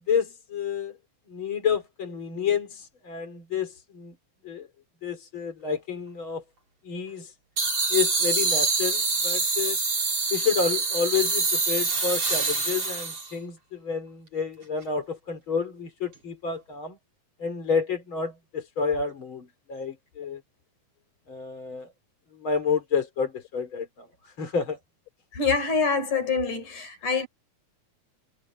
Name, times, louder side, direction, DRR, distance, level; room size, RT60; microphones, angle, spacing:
voice 1, 0.1-1.0 1.3-4.2 4.4-4.7 5.0-6.4 6.8-7.3 7.9-9.8 10.3-17.0 17.4-20.4 21.3-21.9 22.3-24.8 27.0-27.1, left 6 dB, 40° left, 4.2 m, -29 dB
sound 1, 7.6-13.3, right 3 dB, 50° right, 7.0 m, -25 dB
voice 2, 25.4-27.3, left 5 dB, 85° left, 5.8 m, -25 dB
omnidirectional pair, 3.4 m